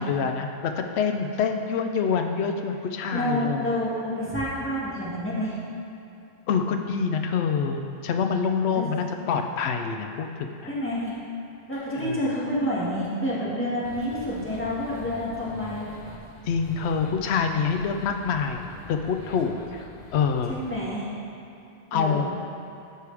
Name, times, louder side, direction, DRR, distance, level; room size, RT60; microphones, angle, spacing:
voice 1, 0.0-3.7 6.5-10.7 12.0-12.2 16.5-18.6 18.9-19.8 20.1-20.5 21.9-22.3, left 6 dB, 85° left, 5 dB, 0.8 m, -26 dB
voice 2, 3.1-5.5 8.8-8.9 10.7-11.1 11.7-15.9 20.5-21.1 21.9-22.3, equal, 10° left, -10 dB, 1.9 m, -28 dB
sound 1, 13.8-20.8, left 3 dB, 45° left, 0.8 m, -45 dB
13.5 x 4.9 x 3.4 m, 2.8 s
omnidirectional pair, 1.1 m